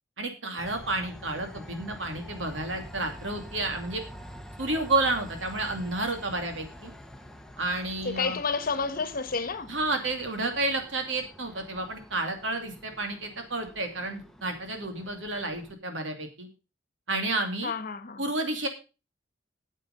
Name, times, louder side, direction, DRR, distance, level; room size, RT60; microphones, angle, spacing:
voice 1, 0.2-4.0 4.6-6.9 7.6-8.4 9.7-16.5 17.1-17.7 18.2-18.7, right 2 dB, 85° right, 2.6 m, -31 dB
Train, 0.6-15.7, equal, 5° left, 0.9 m, -47 dB
voice 2, 8.0-9.7 17.6-18.2, left 4 dB, 50° left, 1.2 m, -30 dB
9.3 x 8.3 x 5.3 m
head